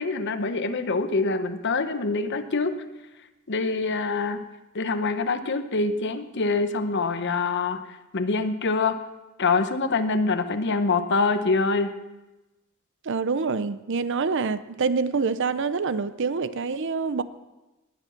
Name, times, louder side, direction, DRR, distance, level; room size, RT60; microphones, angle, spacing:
voice 1, 0.0-2.8 3.5-4.5 4.7-7.8 8.1-9.0 9.4-11.9, left 3 dB, 55° left, 0.9 m, -25 dB
voice 2, 13.0-17.2, right 4 dB, 60° right, 0.6 m, -26 dB
19.5 x 7.1 x 5.8 m
head